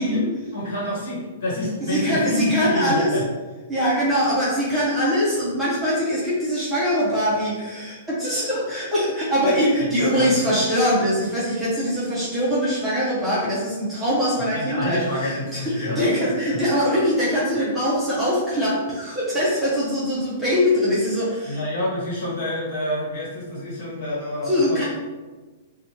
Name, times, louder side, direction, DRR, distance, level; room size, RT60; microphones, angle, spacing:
voice 1, 0.0-3.2 9.8-10.5 14.5-16.1 16.5-16.6 21.5-24.8, left 1 dB, 50° left, -6 dB, 1.2 m, -27 dB
voice 2, 1.8-3.1 3.7-15.0 15.5-21.6 24.5-24.8, equal, 5° right, -9 dB, 0.6 m, -22 dB
3.2 x 2.2 x 2.8 m, 1.3 s
hypercardioid pair, 170°, 0 cm